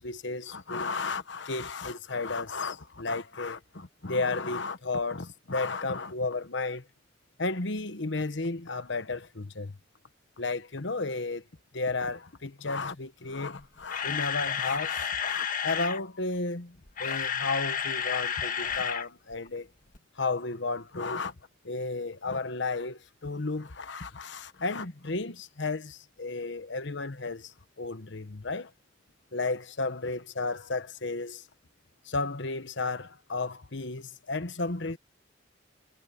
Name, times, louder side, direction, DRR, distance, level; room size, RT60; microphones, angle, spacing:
voice 1, 0.0-6.8 7.4-9.8 10.4-11.4 11.7-19.7 20.2-21.3 21.6-27.5 27.8-28.7 29.3-31.4 32.0-35.0, left 3 dB, 65° left, 1.2 m, -33 dB
Camera, 13.6-16.0 16.8-19.1 19.3-19.5 19.9-20.0, left 8 dB, 45° left, 1.6 m, -31 dB
head